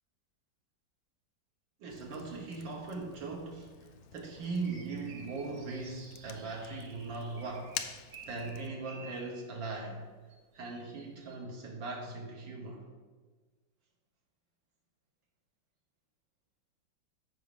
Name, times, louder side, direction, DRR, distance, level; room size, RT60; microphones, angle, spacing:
voice 1, 1.8-10.1 10.5-12.9, right 3 dB, 80° right, -1 dB, 1.8 m, -40 dB
Fire, 1.9-8.7, left 9 dB, 90° left, 1.4 m, -48 dB
sound 1, 4.6-9.5 10.3-11.4, right 4 dB, 60° right, 1.9 m, -53 dB
14.0 x 4.9 x 3.6 m, 1.4 s
omnidirectional pair, 2.1 m